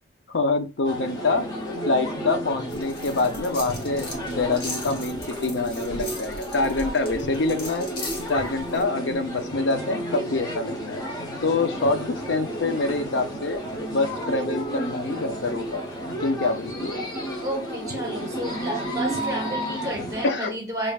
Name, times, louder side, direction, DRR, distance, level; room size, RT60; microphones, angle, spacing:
voice 1, 0.3-1.5 1.9-7.9 8.3-11.0 11.4-13.6 13.9-15.8 16.2-17.0 20.2-20.5, left 3 dB, 70° left, 8 dB, 0.6 m, -26 dB
sound 1, 0.8-20.3, equal, 20° left, 0.7 m, -32 dB
sound 2, 2.7-8.8, left 2 dB, 50° left, 1.2 m, -38 dB
voice 2, 17.4-20.9, right 1 dB, 20° right, 1 dB, 1.1 m, -31 dB
5.2 x 2.5 x 2.4 m, 0.31 s
head